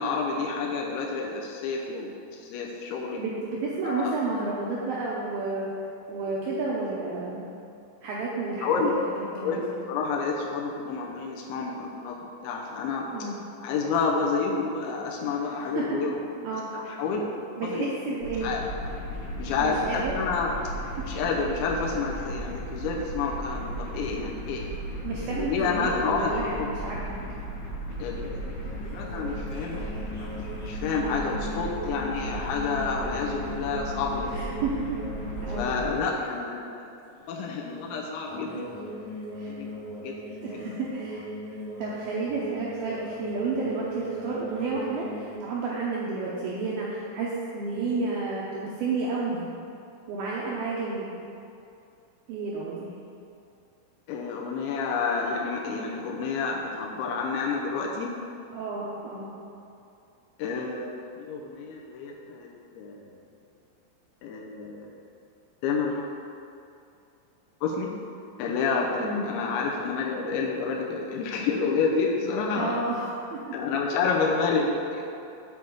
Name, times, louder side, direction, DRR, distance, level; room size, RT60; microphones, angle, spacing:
voice 1, 0.0-3.2 3.8-4.1 8.6-8.9 9.3-9.6 9.9-12.2 12.4-13.1 13.6-16.2 16.7-18.2 18.4-18.6 19.4-20.5 21.1-24.7 25.2-26.3 26.6-26.7 28.0-28.5 28.9-30.3 30.7-34.4 35.5-37.0 37.3-39.0 39.4-39.7 40.0-40.3 54.1-58.1 60.4-62.5 62.7-63.1 64.2-64.9 65.6-66.2 67.6-67.9 68.4-72.9 73.5-75.0, left 4 dB, 85° left, -1 dB, 3.1 m, -29 dB
voice 2, 3.2-5.7 6.1-7.4 8.0-9.0 9.3-9.6 13.1-13.3 15.5-15.8 16.4-16.9 17.6-18.5 19.6-20.1 25.0-27.2 31.0-31.3 34.3-35.0 35.4-35.7 39.3-39.5 40.4-41.2 41.8-49.4 50.1-51.1 52.3-52.9 58.5-59.3 69.0-69.2 72.5-73.4, right 3 dB, 80° right, -5 dB, 2.2 m, -31 dB
sound 1, 18.2-35.9, right 1 dB, 50° left, 3.1 m, -36 dB
sound 2, 28.5-35.6 35.9-36.4 38.3-45.3, equal, 35° left, 2.5 m, -39 dB
7.8 x 5.4 x 6.9 m, 2.6 s
omnidirectional pair, 5.3 m